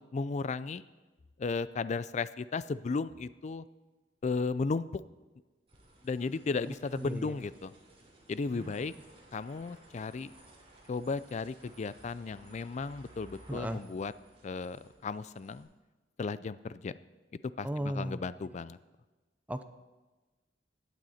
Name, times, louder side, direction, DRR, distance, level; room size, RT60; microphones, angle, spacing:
voice 1, 0.1-0.8 1.4-3.7 4.2-5.0 6.0-7.7 8.3-8.9 9.3-10.3 10.9-14.1 14.4-15.7 16.2-16.9 17.6-18.8, left 4 dB, 40° left, 16 dB, 0.4 m, -35 dB
sound 1, 5.7-15.6, right 1 dB, 35° right, 3.3 m, -58 dB
voice 2, 6.7-7.3 8.5-8.7 13.5-13.8 17.6-18.2 19.5-19.6, equal, 10° right, 9 dB, 0.6 m, -36 dB
16.5 x 9.2 x 4.2 m, 1.2 s
head